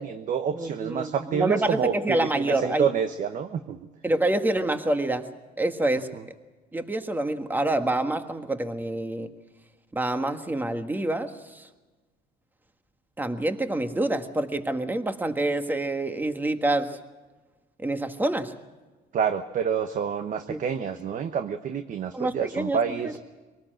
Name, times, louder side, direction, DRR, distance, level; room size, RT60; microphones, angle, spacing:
voice 1, 0.0-3.9 19.1-23.2, right 7 dB, 50° right, 8 dB, 1.1 m, -28 dB
voice 2, 0.5-2.9 4.0-5.3 5.6-6.1 6.7-9.3 9.9-11.7 13.2-17.0 17.8-18.5 20.5-20.6 22.1-22.8 23.0-23.1, right 2 dB, 10° right, 7 dB, 1.6 m, -27 dB
24.0 x 18.5 x 7.8 m, 1.2 s
cardioid pair, 110°, 17 cm